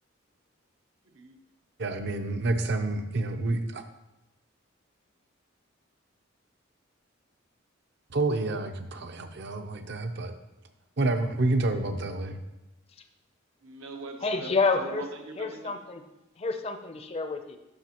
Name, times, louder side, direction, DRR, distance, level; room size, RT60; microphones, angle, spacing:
voice 1, 1.0-1.4 13.6-15.8, right 3 dB, 85° right, 3 dB, 0.9 m, -42 dB
voice 2, 1.8-3.8 8.1-10.3 11.0-12.4, right 2 dB, 55° right, 7 dB, 0.6 m, -28 dB
voice 3, 14.2-15.0 15.4-16.0 16.4-17.6, left 4 dB, 30° left, 7 dB, 0.5 m, -28 dB
12.0 x 4.9 x 2.9 m, 0.97 s
head